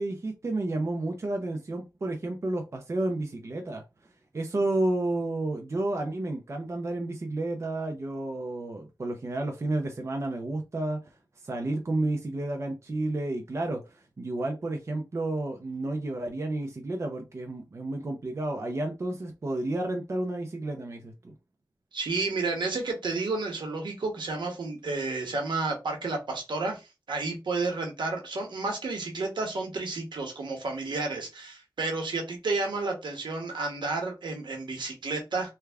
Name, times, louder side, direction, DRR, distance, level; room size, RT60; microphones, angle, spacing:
voice 1, 0.0-3.8 4.3-21.3, right 2 dB, 35° right, 0.5 m, -31 dB
voice 2, 21.9-35.5, right 3 dB, 70° right, 1.1 m, -31 dB
3.3 x 2.3 x 3.4 m
wide cardioid pair, 125°, 8 cm